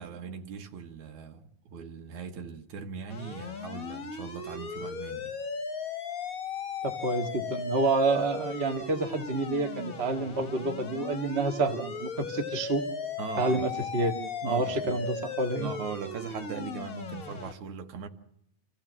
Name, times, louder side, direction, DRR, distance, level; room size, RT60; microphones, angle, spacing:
voice 1, 0.0-5.3 13.2-13.7 14.4-15.0 15.6-18.1, right 6 dB, 80° right, 2.8 m, -40 dB
sound 1, 3.1-17.5, left 5 dB, 40° left, 1.3 m, -37 dB
voice 2, 6.8-12.8 13.4-14.1 14.4-15.7, right 3 dB, 35° right, 1.1 m, -28 dB
26.5 x 15.5 x 7.4 m
omnidirectional pair, 3.3 m